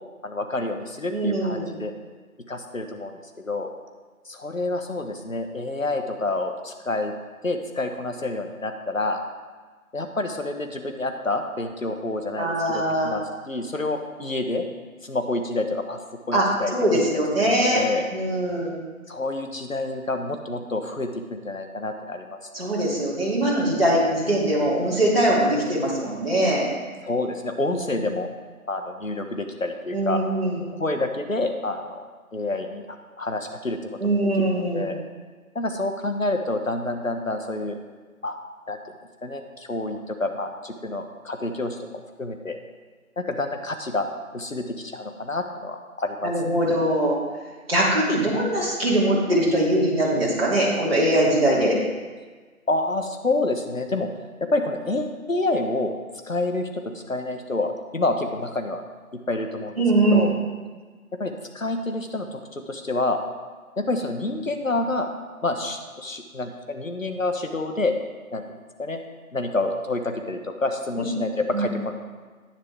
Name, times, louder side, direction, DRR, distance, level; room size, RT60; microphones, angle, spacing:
voice 1, 0.2-1.9 2.5-3.7 4.3-7.1 7.4-9.2 9.9-14.6 15.0-16.0 16.3-16.7 17.5-18.1 19.1-22.4 27.0-28.3 28.7-30.2 30.7-32.9 33.2-34.2 34.5-35.0 35.5-37.8 38.2-38.4 38.7-38.8 39.2-41.8 42.2-42.6 43.2-46.3 52.7-54.1 54.5-56.0 56.2-56.8 57.1-58.8 59.3-59.8 60.1-60.3 61.2-63.2 63.8-65.1 65.4-67.9 68.3-68.4 68.8-69.0 69.3-71.9, left 2 dB, 65° left, 5 dB, 1.3 m, -28 dB
voice 2, 1.1-1.7 12.4-13.1 16.3-16.4 16.7-17.8 18.1-18.7 22.5-26.7 27.7-27.8 29.9-30.6 34.0-34.8 46.2-47.2 47.7-51.8 59.8-60.3 71.5-71.7, right 1 dB, 40° right, -6 dB, 2.9 m, -22 dB
10.0 x 9.9 x 3.5 m, 1.4 s
figure-of-eight pair, 180°, 43 cm